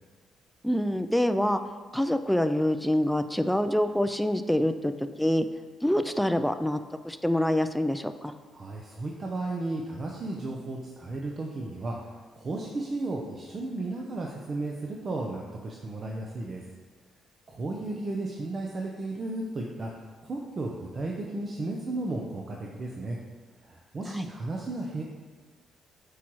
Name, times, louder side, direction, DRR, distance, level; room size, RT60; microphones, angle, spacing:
voice 1, 0.6-1.6 1.9-4.9 5.2-5.5 5.8-6.8 7.0-8.3 24.1-24.3, left 1 dB, 5° left, 9 dB, 0.3 m, -26 dB
voice 2, 8.5-16.6 17.5-23.2 23.6-25.0, right 2 dB, 40° right, -1 dB, 0.7 m, -34 dB
8.2 x 4.7 x 3.1 m, 1.4 s
cardioid pair, 90°, 0 cm